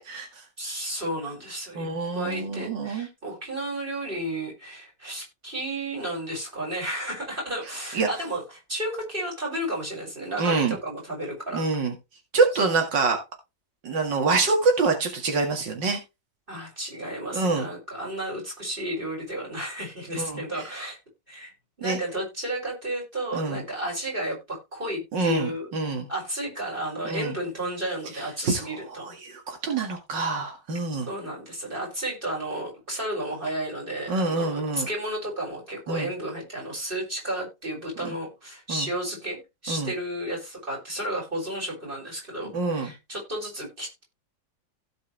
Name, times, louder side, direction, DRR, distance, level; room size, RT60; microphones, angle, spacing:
voice 1, 0.0-0.4 1.8-3.1 7.9-8.1 10.4-10.8 11.5-11.9 12.3-13.2 13.8-16.0 17.3-17.7 20.2-20.7 21.8-22.0 23.3-23.6 25.1-26.1 27.0-27.3 28.1-31.1 34.1-34.9 35.9-36.1 38.0-38.1 38.7-38.9 39.7-39.9 42.5-42.9, right 3 dB, 90° right, 2.7 m, -26 dB
voice 2, 0.6-1.9 2.1-8.4 8.7-11.6 16.5-21.0 21.3-21.5 21.8-25.7 26.1-29.1 31.1-44.0, right 1 dB, 30° right, 6.1 m, -32 dB
16.5 x 5.5 x 3.3 m
omnidirectional pair, 1.9 m